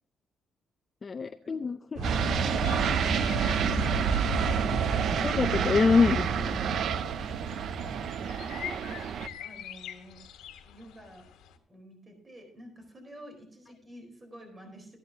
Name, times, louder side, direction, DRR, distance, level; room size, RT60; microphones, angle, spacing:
voice 1, 1.0-2.0 5.2-6.5, left 5 dB, 35° left, 9 dB, 0.5 m, -25 dB
sound 1, 2.0-11.6, left 10 dB, 90° left, 1.2 m, -46 dB
sound 2, 2.0-9.3, right 8 dB, 65° right, 0.5 m, -30 dB
sound 3, 2.0-9.3, right 3 dB, 80° right, 2.6 m, -31 dB
voice 2, 3.5-4.7 7.6-10.2 10.6-11.3 11.7-15.0, equal, 25° right, 3 dB, 4.1 m, -49 dB
14.0 x 10.5 x 2.8 m, 0.65 s
cardioid pair, 90°, 0 cm